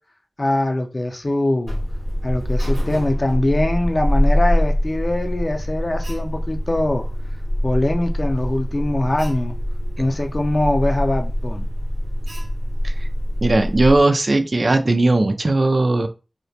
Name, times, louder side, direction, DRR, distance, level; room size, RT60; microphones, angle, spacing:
voice 1, 0.4-1.8 2.2-7.0 7.6-9.6 10.0-11.7, left 1 dB, 45° left, 4 dB, 0.5 m, -22 dB
Alarm, 1.6-14.0, equal, 85° right, 0.8 m, -24 dB
voice 2, 13.4-16.1, right 2 dB, 55° right, 7 dB, 0.3 m, -18 dB
2.2 x 2.1 x 2.6 m, 0.31 s
cardioid pair, 45°, 0 cm